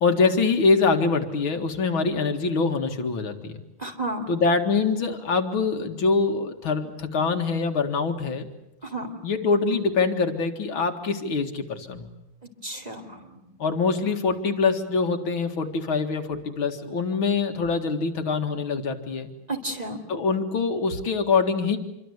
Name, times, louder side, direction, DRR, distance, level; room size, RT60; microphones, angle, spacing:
voice 1, 0.0-3.6 4.3-8.5 9.2-12.1 13.6-19.3 20.1-21.8, left 4 dB, 75° left, 6 dB, 2.7 m, -24 dB
voice 2, 3.8-4.3 8.8-9.1 12.6-13.4 19.5-20.0, right 2 dB, 20° right, 4 dB, 3.2 m, -32 dB
27.0 x 24.0 x 8.2 m, 0.89 s
omnidirectional pair, 2.3 m